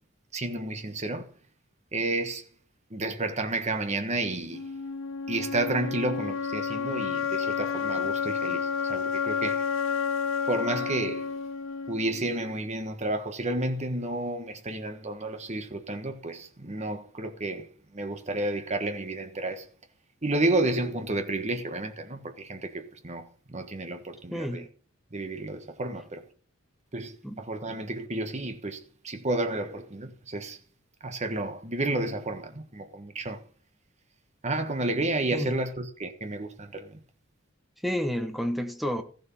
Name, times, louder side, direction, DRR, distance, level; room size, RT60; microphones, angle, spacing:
voice 1, 0.3-1.3 1.9-2.4 2.9-4.7 5.3-9.7 10.5-11.3 11.9-17.7 17.9-19.7 20.2-24.6 25.1-26.2 26.9-30.6 31.0-33.4 34.4-37.0, right 2 dB, 35° right, 1.4 m, -31 dB
sound 1, 4.5-12.5, left 6 dB, 70° left, 0.7 m, -30 dB
voice 2, 24.3-24.7 27.2-27.3 35.3-35.5 37.8-39.0, equal, ahead, 1.1 m, -30 dB
14.5 x 7.1 x 5.5 m
head